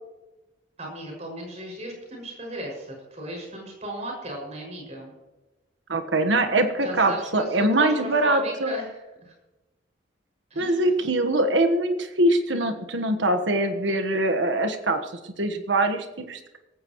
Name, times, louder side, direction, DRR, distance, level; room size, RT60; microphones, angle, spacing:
voice 1, 0.8-5.1 6.8-9.3 10.5-10.9, right 1 dB, 35° right, 0 dB, 6.3 m, -36 dB
voice 2, 5.9-8.7 10.6-15.1 15.4-16.6, right 1 dB, 75° right, 7 dB, 1.4 m, -23 dB
18.0 x 16.0 x 3.1 m, 1.0 s
head